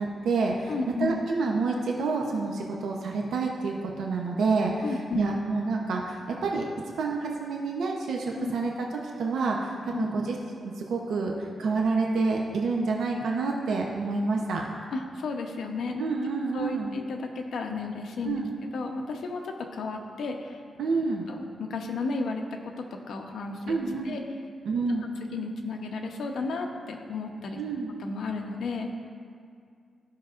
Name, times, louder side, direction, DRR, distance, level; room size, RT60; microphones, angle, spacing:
voice 1, 0.0-8.7 9.2-14.6 16.0-16.9 18.2-18.5 20.8-21.3 23.7-24.2 24.6-25.1 27.6-27.9, right 3 dB, 80° right, 0 dB, 0.8 m, -28 dB
voice 2, 0.7-1.2 4.8-5.2 8.3-8.5 9.9-10.1 14.9-16.0 16.5-18.4 18.7-20.6 21.3-23.8 24.0-24.2 25.3-27.6 28.0-28.9, left 4 dB, 75° left, 2 dB, 0.8 m, -33 dB
15.0 x 5.8 x 2.5 m, 2.2 s
wide cardioid pair, 150°, 0 cm